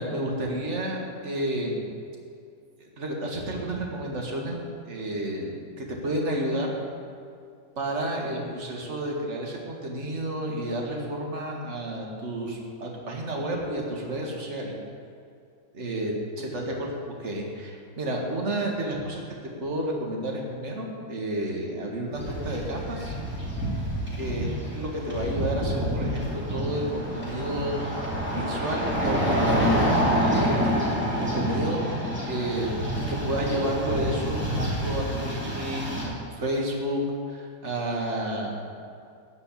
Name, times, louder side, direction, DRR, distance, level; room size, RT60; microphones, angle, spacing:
voice 1, 0.0-1.9 2.8-4.6 4.9-5.5 5.8-6.7 7.8-14.8 15.7-16.9 17.2-19.2 19.6-23.2 24.2-29.8 30.2-32.8 33.1-37.0 37.3-38.6, right 1 dB, 40° right, -1 dB, 2.1 m, -31 dB
sound 1, 22.1-36.0, equal, 5° right, 2.6 m, -28 dB
14.0 x 5.4 x 8.7 m, 2.4 s
omnidirectional pair, 1.9 m